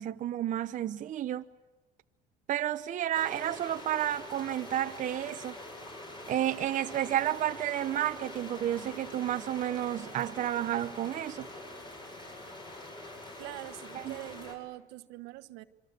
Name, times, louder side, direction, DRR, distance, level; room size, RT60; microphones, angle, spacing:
voice 1, 0.0-1.4 2.5-5.6 6.3-11.5 13.9-14.1, right 12 dB, 50° right, 0.9 m, -31 dB
sound 1, 3.1-14.5, left 1 dB, 30° left, 7.8 m, -45 dB
voice 2, 13.4-15.6, right 17 dB, 80° right, 1.2 m, -44 dB
26.5 x 24.0 x 8.2 m
supercardioid pair, 100°, 17 cm